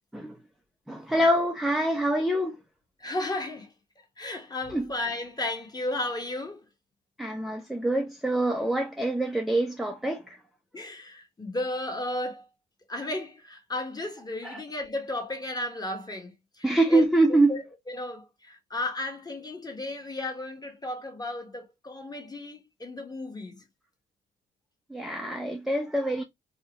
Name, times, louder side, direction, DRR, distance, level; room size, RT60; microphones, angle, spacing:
voice 1, 0.9-2.6 4.7-4.9 7.2-10.4 14.4-14.6 16.6-17.6 24.9-26.2, right 1 dB, ahead, 0.4 m, -25 dB
voice 2, 3.0-3.7 4.2-6.6 10.7-12.5 12.9-23.6, left 2 dB, 20° left, 1.1 m, -34 dB
2.8 x 2.0 x 2.7 m
supercardioid pair, 70°, 19 cm